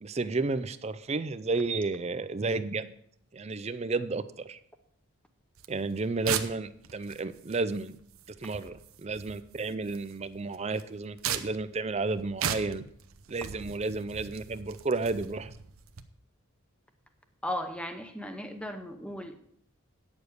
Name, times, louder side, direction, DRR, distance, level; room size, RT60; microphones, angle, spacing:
voice 1, 0.0-2.9 3.3-4.6 5.7-7.9 8.4-12.8 13.3-15.5, right 3 dB, 30° right, 14 dB, 0.4 m, -32 dB
sound 1, 5.6-16.0, right 8 dB, 75° right, 0.7 m, -39 dB
voice 2, 17.4-19.3, left 1 dB, 5° left, 7 dB, 0.8 m, -36 dB
9.5 x 7.0 x 6.5 m, 0.67 s
head